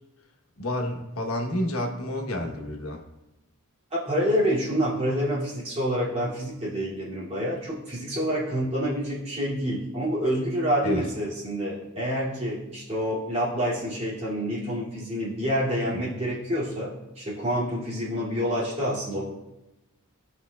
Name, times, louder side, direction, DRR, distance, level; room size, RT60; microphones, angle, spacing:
voice 1, 0.6-3.0 10.8-11.1 15.9-16.1, left 1 dB, 80° left, 2 dB, 1.1 m, -29 dB
voice 2, 3.9-19.3, equal, 30° right, -8 dB, 2.6 m, -27 dB
16.5 x 5.5 x 2.3 m, 0.97 s
head